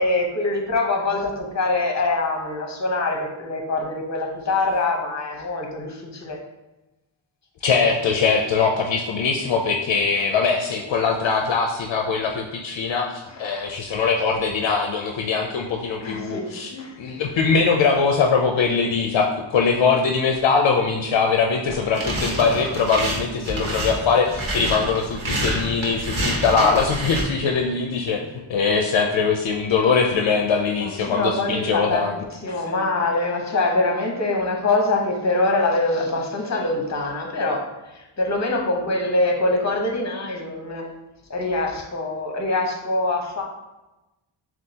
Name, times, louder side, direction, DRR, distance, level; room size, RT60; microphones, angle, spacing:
voice 1, 0.0-6.4 13.3-13.7 16.0-16.9 30.8-32.1 32.4-40.8 41.3-43.4, left 2 dB, 35° left, 1 dB, 0.9 m, -24 dB
voice 2, 7.6-16.7 17.0-32.1, left 5 dB, 65° left, 2 dB, 0.6 m, -21 dB
sound 1, 21.7-27.2, right 1 dB, 75° right, 1.3 m, -27 dB
7.2 x 2.4 x 2.8 m, 1.0 s
wide cardioid pair, 95°, 48 cm